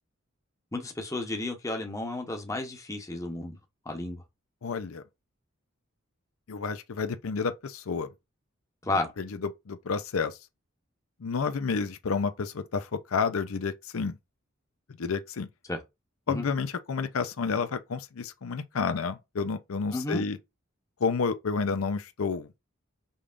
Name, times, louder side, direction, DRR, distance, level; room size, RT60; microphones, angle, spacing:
voice 1, 0.7-3.6 3.9-4.2 8.8-9.1 15.7-15.8 16.3-16.4 19.9-20.2, left 2 dB, 15° left, 0.9 m, -32 dB
voice 2, 4.6-5.0 6.5-8.1 9.2-10.4 11.2-14.2 15.0-15.5 16.3-20.4 21.0-22.5, left 5 dB, 85° left, 0.6 m, -30 dB
5.4 x 3.4 x 2.5 m
head